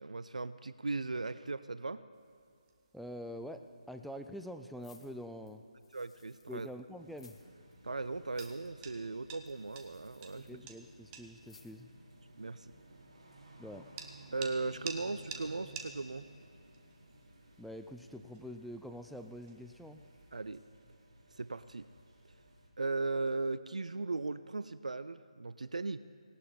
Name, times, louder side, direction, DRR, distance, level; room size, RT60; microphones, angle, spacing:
voice 1, 0.0-2.0 5.9-6.7 7.8-10.6 12.4-12.7 14.3-16.3 20.3-20.6 21.3-21.8 22.8-26.0, right 3 dB, 70° right, 14 dB, 0.5 m, -37 dB
sound 1, 2.1-20.4, right 6 dB, 15° right, 0.9 m, -54 dB
voice 2, 2.9-5.6 6.5-7.4 10.4-11.9 13.6-13.9 17.6-20.0, equal, ahead, 5 dB, 0.4 m, -45 dB
sound 2, 4.8-6.7 7.1-7.5 7.7-7.8 8.2-8.7 9.4-10.6 11.4-11.9 12.4-12.5, left 5 dB, 50° left, 1.7 m, -62 dB
sound 3, 7.0-22.7, right 1 dB, 45° right, 4.0 m, -57 dB
18.0 x 17.5 x 3.9 m, 2.5 s
figure-of-eight pair, 150°, 4 cm